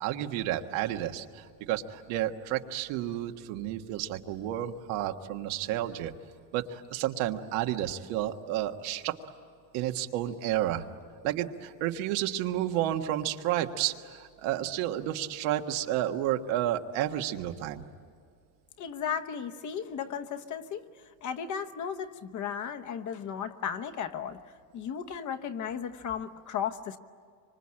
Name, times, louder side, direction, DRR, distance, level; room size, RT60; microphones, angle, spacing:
voice 1, 0.0-6.1 6.5-9.1 9.7-10.8 11.2-17.8, right 12 dB, 80° right, 5 dB, 1.6 m, -31 dB
voice 2, 18.8-20.9 21.2-24.4 24.7-27.0, left 7 dB, 40° left, 8 dB, 1.1 m, -35 dB
26.0 x 25.5 x 8.8 m, 2.2 s
cardioid pair, 160°, 47 cm